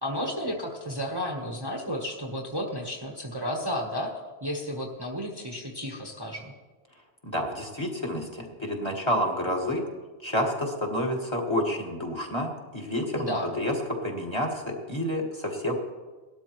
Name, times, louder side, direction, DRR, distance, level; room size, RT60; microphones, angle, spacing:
voice 1, 0.0-4.1 4.4-6.5 13.1-13.5, equal, 20° right, -1 dB, 1.2 m, -32 dB
voice 2, 7.2-9.8 10.2-13.8 14.0-15.7, equal, 25° left, 1 dB, 1.7 m, -29 dB
18.0 x 12.5 x 3.1 m, 1.3 s
omnidirectional pair, 1.2 m